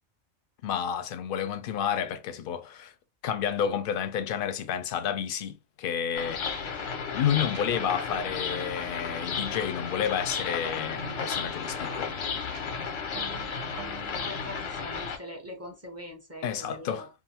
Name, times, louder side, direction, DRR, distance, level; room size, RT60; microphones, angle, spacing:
voice 1, 0.6-2.9 3.2-6.4 7.1-12.1 16.4-17.1, left 8 dB, 60° left, 0.6 m, -30 dB
sound 1, 6.1-15.2, left 5 dB, 90° left, 1.1 m, -33 dB
sound 2, 7.5-14.3, right 6 dB, 85° right, 0.9 m, -48 dB
voice 2, 14.1-17.1, equal, 20° right, 0.5 m, -43 dB
2.5 x 2.5 x 2.8 m
omnidirectional pair, 1.3 m